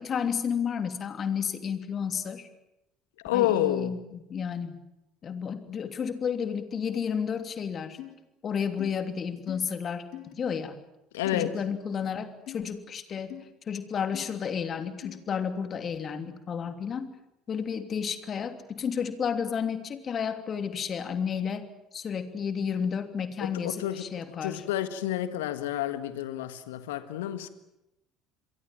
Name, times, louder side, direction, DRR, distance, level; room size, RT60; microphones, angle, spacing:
voice 1, 0.0-2.5 3.3-4.8 5.2-8.0 8.4-10.1 10.4-10.8 11.3-13.3 13.7-17.1 17.5-21.6 21.9-24.6, left 7 dB, 40° left, 3.0 m, -31 dB
voice 2, 3.2-3.9 11.1-11.5 23.4-24.0 24.4-27.5, left 12 dB, 75° left, 1.7 m, -29 dB
sound 1, 8.0-8.1 8.8-8.9 9.5-9.6 10.1-10.3 11.2-11.5 12.5-12.6 13.3-13.4 14.1-14.2 15.0-15.2, left 15 dB, 55° left, 4.4 m, -41 dB
28.0 x 23.0 x 7.6 m
figure-of-eight pair, 60°, 0 cm